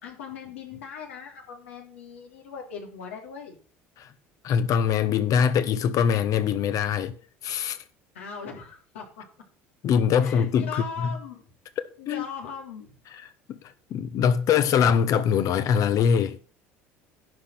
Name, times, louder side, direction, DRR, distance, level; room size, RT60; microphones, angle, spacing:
voice 1, 0.0-3.6 8.1-9.2 10.2-11.4 12.0-12.9, left 6 dB, 90° left, 3.1 m, -39 dB
voice 2, 4.4-7.1 7.4-7.8 9.8-11.1 12.1-12.2 13.5-13.6 13.9-16.4, left 7 dB, 55° left, 1.3 m, -23 dB
11.0 x 4.4 x 7.8 m
hypercardioid pair, 80°, 7 cm